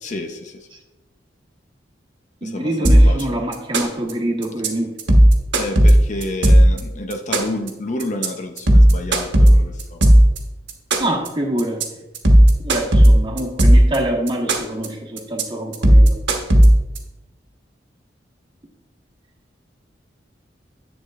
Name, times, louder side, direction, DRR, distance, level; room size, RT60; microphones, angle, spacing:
voice 1, 0.0-0.7 2.4-3.4 5.5-10.0, left 2 dB, 40° left, 5 dB, 0.6 m, -29 dB
voice 2, 2.4-4.9 11.0-11.8 12.6-16.2, right 1 dB, 25° right, 0 dB, 1.3 m, -25 dB
sound 1, 2.8-3.2 3.5-4.1 4.4-4.7 5.0-6.8 7.1-7.7 8.0-8.3 8.6-10.4 10.7-11.3 11.6-11.8 12.1-14.0 14.3-14.9 15.2-15.4 15.7-17.0, equal, 80° right, 1.2 m, -11 dB
10.0 x 8.0 x 2.5 m, 0.99 s
head